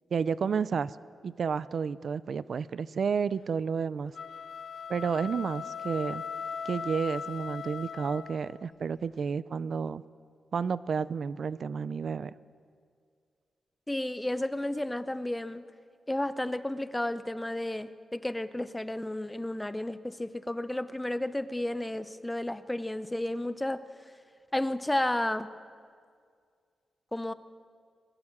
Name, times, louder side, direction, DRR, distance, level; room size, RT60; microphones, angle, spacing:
voice 1, 0.1-1.0 1.2-4.1 4.9-6.2 6.6-10.0 10.5-12.3, right 6 dB, 55° right, 17 dB, 0.5 m, -31 dB
sound 1, 4.1-8.6, left 6 dB, 60° left, 0.6 m, -39 dB
voice 2, 13.9-15.6 16.1-23.8 24.5-25.5 27.1-27.3, left 1 dB, 10° left, 13 dB, 0.7 m, -32 dB
22.0 x 21.0 x 7.4 m, 2.1 s
wide cardioid pair, 140°, 0 cm